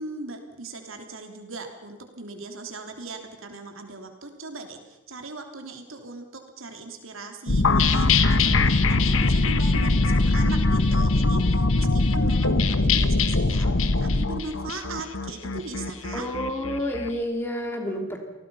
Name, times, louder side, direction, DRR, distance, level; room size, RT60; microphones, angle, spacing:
voice 1, 0.0-16.3, right 3 dB, 75° right, 4 dB, 3.4 m, -39 dB
sound 1, 7.5-14.3, left 2 dB, 55° left, 1.0 m, -22 dB
sound 2, 7.6-17.1, left 6 dB, 75° left, 1.4 m, -27 dB
voice 2, 16.1-18.2, equal, 10° left, 3 dB, 3.3 m, -29 dB
28.0 x 19.5 x 5.7 m, 1.1 s
head